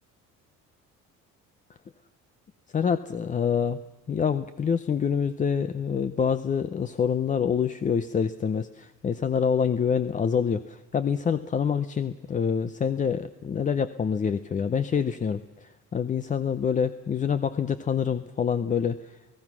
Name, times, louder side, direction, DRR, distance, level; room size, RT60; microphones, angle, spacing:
voice 1, 2.7-3.8 4.1-19.2, left 7 dB, 25° left, 12 dB, 0.6 m, -26 dB
29.0 x 18.0 x 6.1 m, 1.2 s
cardioid pair, 150°, 32 cm